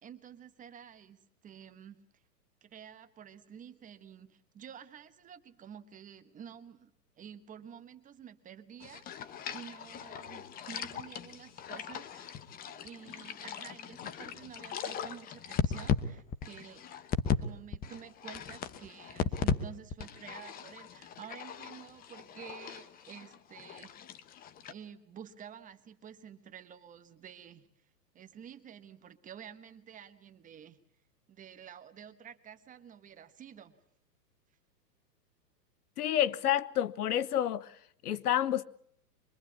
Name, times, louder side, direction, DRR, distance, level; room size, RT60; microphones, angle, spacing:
voice 1, 0.0-2.2 2.6-12.4 12.8-16.9 17.4-23.9 24.7-27.7 28.1-30.8 31.3-33.8, right 8 dB, 15° right, 1.3 m, -50 dB
sound 1, 8.8-17.4 17.7-19.6 19.9-24.7, left 7 dB, 15° left, 1.0 m, -37 dB
voice 2, 36.0-38.6, left 11 dB, 65° left, 1.1 m, -29 dB
25.0 x 22.0 x 8.4 m
hypercardioid pair, 135°, 50 cm